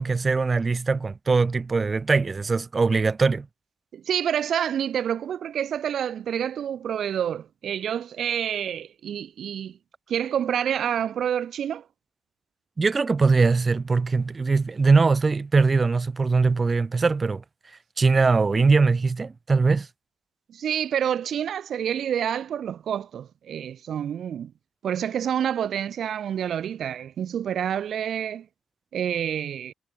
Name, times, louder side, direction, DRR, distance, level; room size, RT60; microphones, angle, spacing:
voice 1, 0.0-3.5 12.8-17.4 18.0-19.9, right 4 dB, 30° right, 1.9 m, -21 dB
voice 2, 3.9-9.8 10.1-11.8 20.5-24.5 24.8-28.5 28.9-29.7, right 9 dB, 60° right, 1.4 m, -28 dB
cardioid pair, 90°, 0 cm